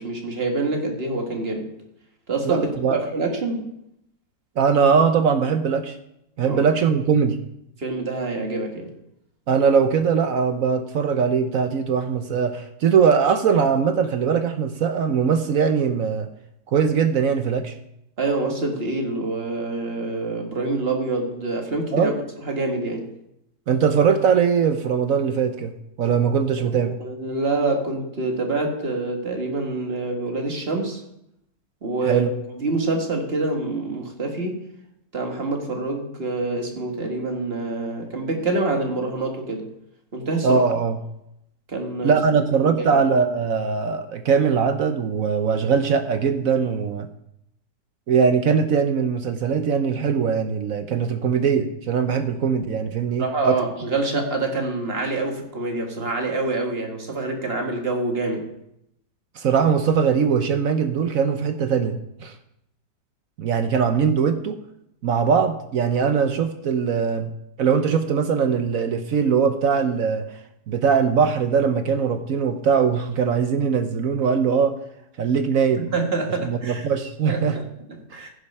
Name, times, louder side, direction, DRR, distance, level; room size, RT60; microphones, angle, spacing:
voice 1, 0.0-1.7 2.3-3.7 6.4-6.6 7.8-8.9 18.2-23.1 26.6-31.0 31.8-32.3 32.5-34.6 35.1-39.7 40.1-40.6 41.7-43.0 53.2-58.5 75.8-76.9 77.3-78.3, right 3 dB, 35° right, 2 dB, 1.8 m, -26 dB
voice 2, 2.5-3.0 4.6-6.0 6.4-7.4 9.5-16.3 16.7-17.7 21.9-22.1 23.7-25.7 26.0-26.9 32.0-32.3 40.4-41.0 42.0-47.1 48.1-53.6 59.4-62.3 63.4-64.6 65.0-67.3 67.6-70.2 70.7-74.7 75.2-75.9 76.4-77.6, right 6 dB, 60° right, 8 dB, 1.0 m, -21 dB
15.0 x 6.5 x 5.5 m, 0.80 s
omnidirectional pair, 1.9 m